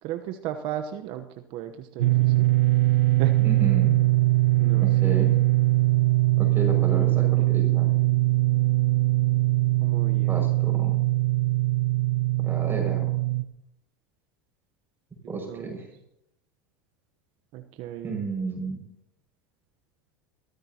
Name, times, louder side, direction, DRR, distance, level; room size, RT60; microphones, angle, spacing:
voice 1, 0.0-2.5 3.2-3.4 4.6-5.2 7.0-7.1 7.4-7.6 7.9-8.2 9.8-10.4 15.2-15.7 17.5-18.2, right 11 dB, 55° right, 7 dB, 1.0 m, -35 dB
sound 1, 2.0-13.4, right 19 dB, 85° right, 0.8 m, -21 dB
voice 2, 3.4-4.0 4.8-5.4 6.4-7.9 10.3-11.1 12.4-13.1 15.3-15.9 18.0-18.8, right 3 dB, 20° right, 1 dB, 6.0 m, -32 dB
22.0 x 14.5 x 2.9 m, 0.80 s
hypercardioid pair, 95°, 10 cm